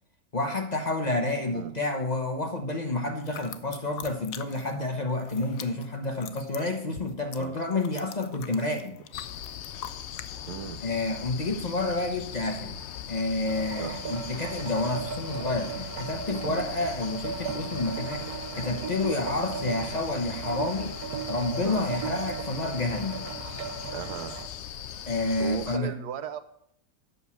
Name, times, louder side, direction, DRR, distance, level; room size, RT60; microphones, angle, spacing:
voice 1, 0.3-9.0 10.8-12.8 13.1-20.9 21.3-23.3 25.1-25.9, left 2 dB, 30° left, 4 dB, 1.0 m, -29 dB
sound 1, 3.2-4.9 5.1-10.3, left 10 dB, 85° left, 1.2 m, -43 dB
sound 2, 9.1-25.8, left 10 dB, 65° left, 0.7 m, -40 dB
voice 2, 10.5-10.8 13.8-14.0 16.4-16.6 21.6-21.8 23.9-24.4 25.4-26.4, right 8 dB, 90° right, 11 dB, 1.4 m, -36 dB
sound 3, 13.5-24.4, right 6 dB, 75° right, 1.6 m, -37 dB
8.3 x 6.2 x 7.2 m, 0.72 s
omnidirectional pair, 1.6 m